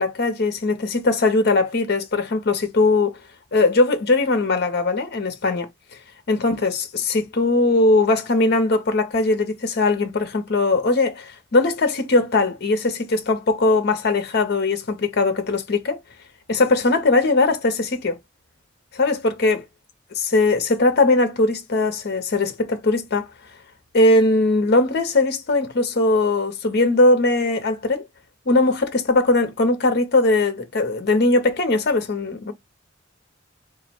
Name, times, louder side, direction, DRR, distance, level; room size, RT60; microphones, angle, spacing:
voice 1, 0.0-3.1 3.5-5.7 6.3-16.0 16.5-18.2 18.9-19.6 20.3-23.3 23.9-28.0 28.5-32.5, left 2 dB, 55° left, 0.6 m, -20 dB
3.7 x 2.0 x 4.3 m
head